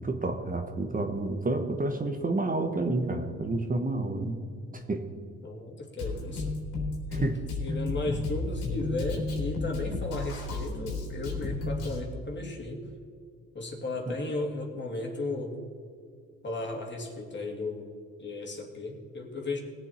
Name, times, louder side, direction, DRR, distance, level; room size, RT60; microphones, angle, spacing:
voice 1, 0.0-4.4 4.7-5.1 7.1-7.4 14.1-14.2, right 2 dB, 30° right, 5 dB, 1.2 m, -30 dB
voice 2, 5.4-6.5 7.2-7.3 7.6-12.8 13.5-15.5 16.4-17.9 18.2-19.6, left 2 dB, 35° left, 1 dB, 2.6 m, -35 dB
Drum kit, 6.0-12.0, left 3 dB, 90° left, 3.4 m, -33 dB
19.5 x 7.7 x 4.4 m, 2.1 s
cardioid pair, 90°, 30 cm